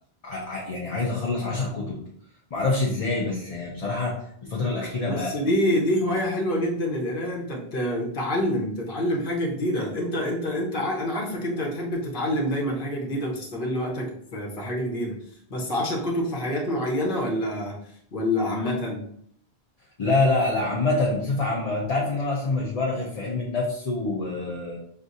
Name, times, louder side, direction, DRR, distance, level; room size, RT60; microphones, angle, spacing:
voice 1, 0.2-2.0 2.5-4.2 4.5-5.5 20.0-24.8, left 3 dB, 40° left, -3 dB, 0.8 m, -26 dB
voice 2, 5.0-15.2 15.5-17.7 18.1-19.0, left 1 dB, 55° left, -2 dB, 1.2 m, -27 dB
6.0 x 2.5 x 2.7 m, 0.66 s
omnidirectional pair, 1.1 m